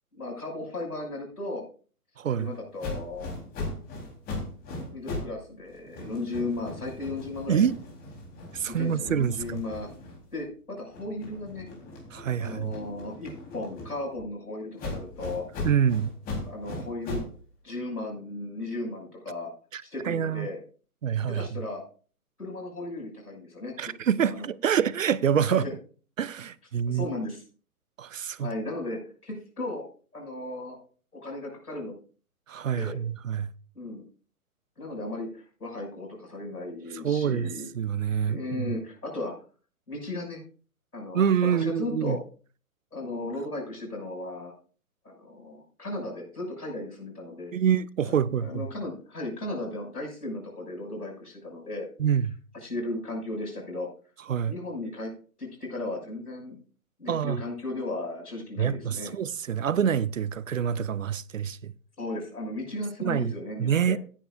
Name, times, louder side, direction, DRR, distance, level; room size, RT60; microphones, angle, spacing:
voice 1, 0.1-1.6 2.4-3.3 4.9-7.6 8.7-9.9 10.3-11.7 12.4-15.4 16.4-17.3 17.6-19.5 19.8-20.6 21.3-21.8 22.4-23.9 24.3-24.5 25.5-25.7 26.9-27.4 28.4-29.8 30.1-30.8 31.1-31.9 32.7-33.0 33.7-34.0 34.8-37.7 38.3-39.3 39.9-40.4 40.9-41.2 41.5-42.2 42.9-44.5 45.0-47.5 48.4-51.9 52.6-53.9 54.5-55.1 55.4-56.6 57.0-59.1 62.0-64.0, left 2 dB, 80° left, 6.3 m, -35 dB
voice 2, 2.2-2.5 7.5-7.7 8.5-9.6 12.1-12.7 15.6-16.1 19.7-20.5 21.0-21.6 23.8-25.6 26.2-27.1 28.0-28.5 32.5-33.5 37.0-38.8 41.1-42.2 47.5-48.7 52.0-52.3 54.3-54.5 57.1-57.4 58.6-61.7 63.0-63.3 63.6-64.0, right 8 dB, 60° right, 0.6 m, -26 dB
sound 1, 2.8-5.4 5.7-10.5 10.9-14.2 14.8-17.4, left 2 dB, 20° left, 3.7 m, -38 dB
16.0 x 9.9 x 2.5 m
figure-of-eight pair, 125°, 45 cm